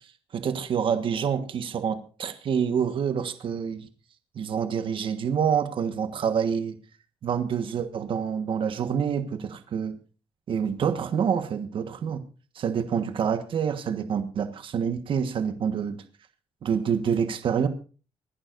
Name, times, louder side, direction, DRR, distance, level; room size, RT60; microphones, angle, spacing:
voice 1, 0.3-3.9 4.3-6.8 7.2-10.0 10.5-12.2 12.5-16.0 16.6-17.7, right 7 dB, 60° right, 9 dB, 1.4 m, -27 dB
25.5 x 11.0 x 2.6 m, 0.36 s
cardioid pair, 115°, 10 cm